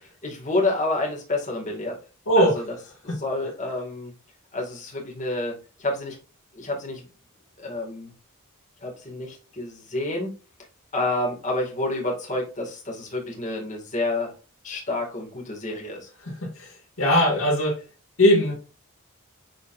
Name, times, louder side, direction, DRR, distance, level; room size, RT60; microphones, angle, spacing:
voice 1, 0.2-2.0 2.4-2.6 3.0-4.1 4.5-5.5 5.8-6.2 6.5-7.0 7.6-8.1 8.8-10.3 10.9-14.3 14.6-16.1, left 2 dB, 35° left, 2.4 m, -28 dB
voice 2, 2.3-2.6 3.1-3.2 16.2-16.7 17.0-17.8 18.2-18.5, equal, 75° left, 2.5 m, -20 dB
10.0 x 4.1 x 2.7 m
head